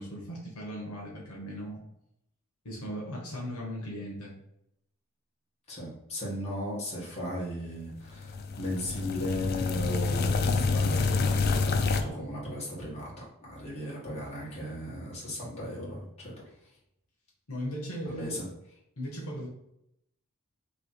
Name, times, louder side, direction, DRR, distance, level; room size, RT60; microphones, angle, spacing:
voice 1, 0.0-1.8 2.6-4.3 17.5-18.4 19.0-19.5, equal, 75° left, -2 dB, 1.1 m, -37 dB
voice 2, 5.7-16.3 18.1-18.4, equal, 30° left, -6 dB, 1.5 m, -36 dB
sound 1, 8.1-12.0, left 4 dB, 45° left, 0.4 m, -27 dB
3.3 x 2.9 x 4.4 m, 0.78 s
head